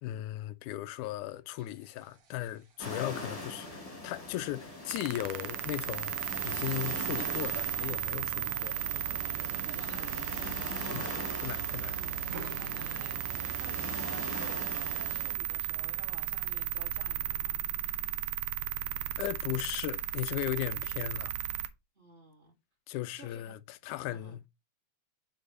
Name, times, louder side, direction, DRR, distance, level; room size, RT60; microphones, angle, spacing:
voice 1, 0.0-6.2 6.4-8.8 10.9-11.1 11.4-12.0 19.2-21.3 22.9-24.5, left 15 dB, 85° left, 2.0 m, -37 dB
sound 1, 1.5-9.3 9.8-10.1 10.4-11.6 12.1-17.0, right 4 dB, 55° right, 2.0 m, -55 dB
sound 2, 2.8-15.4, left 2 dB, 15° left, 1.6 m, -42 dB
sound 3, 4.9-21.7, right 13 dB, 80° right, 1.9 m, -35 dB
voice 2, 9.7-10.2 10.8-11.5 11.8-12.2 12.6-17.6 21.9-22.5 23.1-23.5 24.0-24.4, right 2 dB, 20° right, 2.4 m, -53 dB
5.3 x 4.7 x 5.3 m
omnidirectional pair, 3.5 m